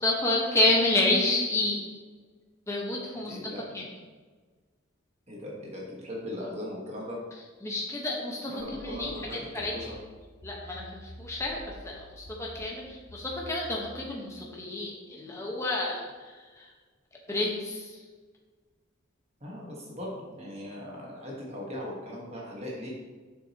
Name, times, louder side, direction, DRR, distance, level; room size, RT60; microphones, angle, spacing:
voice 1, 0.0-1.8 2.7-3.4 3.7-3.8 7.6-9.1 9.5-9.7 10.4-11.6 11.8-16.7 17.3-18.0, left 2 dB, 15° left, -2 dB, 1.1 m, -29 dB
voice 2, 3.3-4.0 5.3-7.2 8.5-9.9 19.4-22.9, left 1 dB, 30° right, -3 dB, 1.4 m, -39 dB
sound 1, 8.6-14.1, equal, 80° left, 0.9 m, -48 dB
7.3 x 6.3 x 2.9 m, 1.4 s
head